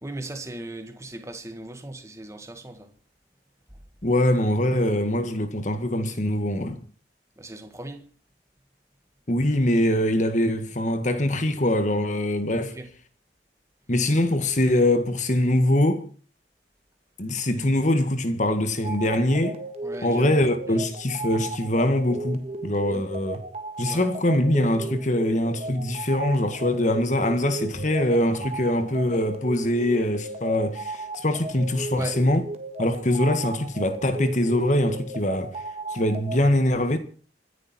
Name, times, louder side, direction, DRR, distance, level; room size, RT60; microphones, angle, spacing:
voice 1, 0.0-2.9 7.4-8.0 12.6-12.9 19.8-20.4 20.7-20.8 22.9-23.0 23.9-24.1 31.9-32.2, right 1 dB, 15° right, 1.9 m, -37 dB
voice 2, 4.0-6.8 9.3-12.7 13.9-16.0 17.2-19.6 20.0-23.4 23.8-32.5 32.8-35.6 35.9-37.0, left 1 dB, 45° left, 1.8 m, -23 dB
sound 1, 18.8-36.4, right 2 dB, 35° right, 1.6 m, -36 dB
26.0 x 10.5 x 4.5 m
head